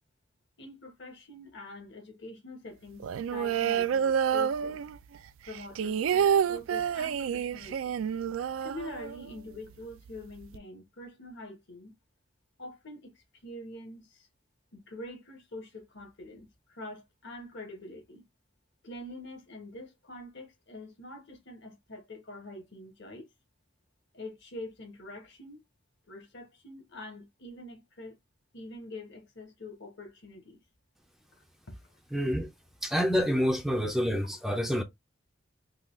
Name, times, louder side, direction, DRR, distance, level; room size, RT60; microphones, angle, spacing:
voice 1, 0.6-4.8 5.4-8.0 8.6-11.9 12.6-14.3 14.7-18.2 18.8-23.3 24.1-25.6 26.1-28.2 28.5-30.6 31.3-31.8, left 1 dB, 60° left, 1.2 m, -45 dB
sound 1, 3.0-5.2 5.5-9.4 9.7-9.8 10.1-10.6, right 8 dB, 80° right, 0.3 m, -28 dB
voice 2, 32.1-32.5 32.8-34.8, equal, ahead, 0.4 m, -27 dB
3.7 x 2.3 x 3.1 m
head